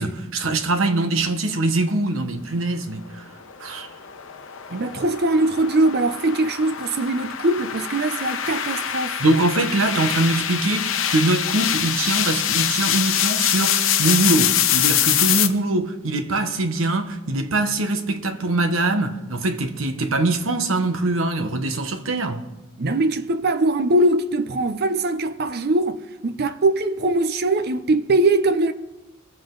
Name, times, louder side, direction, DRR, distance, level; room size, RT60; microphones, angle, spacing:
voice 1, 0.0-3.3 3.6-3.9 9.2-22.4, right 2 dB, 75° right, 1.2 m, -23 dB
sound 1, 3.4-15.5, left 10 dB, 70° left, 0.8 m, -24 dB
voice 2, 4.7-9.1 22.8-28.7, right 2 dB, 50° right, 0.6 m, -21 dB
22.0 x 7.6 x 3.9 m
head